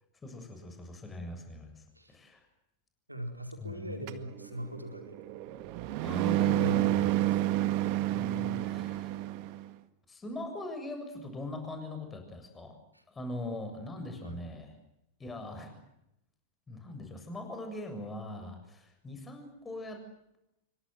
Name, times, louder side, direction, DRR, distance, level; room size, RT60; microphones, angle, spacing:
voice 1, 0.2-2.5 3.6-4.1 6.0-7.1 8.1-9.1 10.1-12.7 13.1-14.7 15.2-15.8 16.7-20.0, left 2 dB, 15° left, 5 dB, 7.4 m, -41 dB
voice 2, 3.1-5.1 6.5-7.2 12.9-13.0 14.2-14.4, right 1 dB, 85° right, 5 dB, 4.9 m, -40 dB
sound 1, 4.1-9.7, right 14 dB, 45° right, 1.8 m, -30 dB
28.0 x 24.0 x 7.8 m, 0.83 s
figure-of-eight pair, 90°, 0 cm